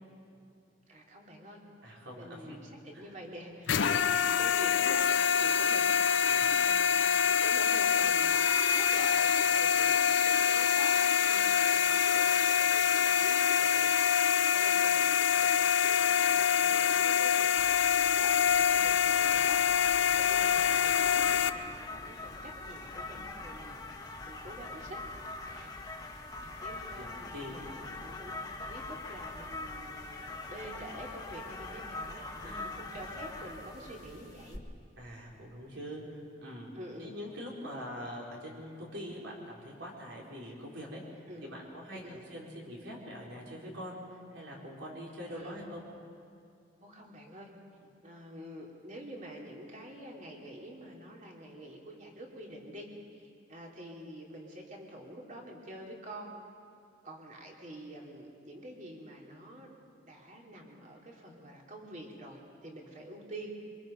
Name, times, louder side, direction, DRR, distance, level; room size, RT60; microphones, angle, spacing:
voice 1, 0.9-1.6 2.1-5.8 6.3-25.0 25.4-25.7 26.6-34.6 36.7-37.1 41.3-41.5 41.9-42.2 45.3-45.8 46.8-47.5 48.0-56.3 57.0-63.5, right 1 dB, 40° right, -1 dB, 3.1 m, -47 dB
voice 2, 1.8-2.6 2.9-3.2 3.7-4.1 6.3-6.5 26.6-27.1 27.3-27.9 32.2-32.8 35.0-36.7 37.0-45.8, equal, 70° right, -3 dB, 4.6 m, -44 dB
sound 1, 3.7-21.5, left 7 dB, 75° left, 0.6 m, -26 dB
sound 2, 17.6-34.6, left 2 dB, 20° left, 1.5 m, -43 dB
24.5 x 22.0 x 5.3 m, 2.5 s
head